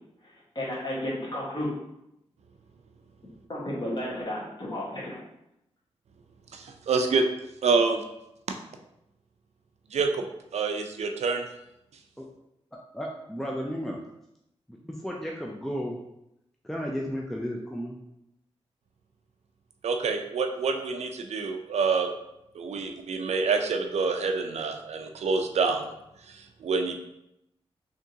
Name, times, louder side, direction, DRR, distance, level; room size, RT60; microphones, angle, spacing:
voice 1, 0.5-1.7 3.5-5.2, left 1 dB, 40° left, -6 dB, 1.4 m, -32 dB
voice 2, 6.5-7.2 7.6-8.0 9.9-10.2 10.5-11.5 19.8-22.1 22.5-25.9 26.3-26.9, right 4 dB, 80° right, 5 dB, 0.4 m, -27 dB
voice 3, 12.9-14.0 14.7-16.0 16.6-18.0 22.7-22.9, equal, ahead, -1 dB, 0.4 m, -34 dB
3.5 x 2.9 x 2.7 m, 0.83 s
wide cardioid pair, 90°, 11 cm